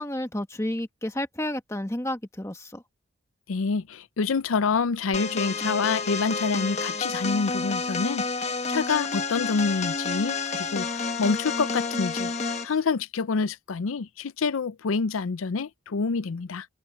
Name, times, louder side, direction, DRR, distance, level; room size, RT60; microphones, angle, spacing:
voice 1, 0.0-2.8, left 1 dB, 15° left, 1.2 m, -31 dB
voice 2, 3.5-12.3 12.6-16.7, left 4 dB, 80° left, 0.5 m, -27 dB
sound 1, 5.1-12.7, left 4 dB, 35° left, 1.3 m, -30 dB
open air
head